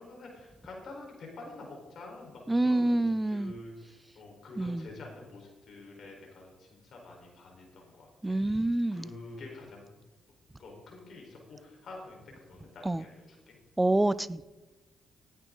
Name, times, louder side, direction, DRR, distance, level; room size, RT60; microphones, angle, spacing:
voice 1, 0.0-8.4 8.9-9.9 10.6-13.6, left 2 dB, 65° left, 0 dB, 4.3 m, -47 dB
voice 2, 2.5-3.5 4.6-4.9 8.2-9.1 12.9-13.0 13.8-14.5, right 2 dB, 15° right, 17 dB, 0.5 m, -27 dB
17.5 x 9.3 x 3.9 m, 1.2 s
supercardioid pair, 65°, 0 cm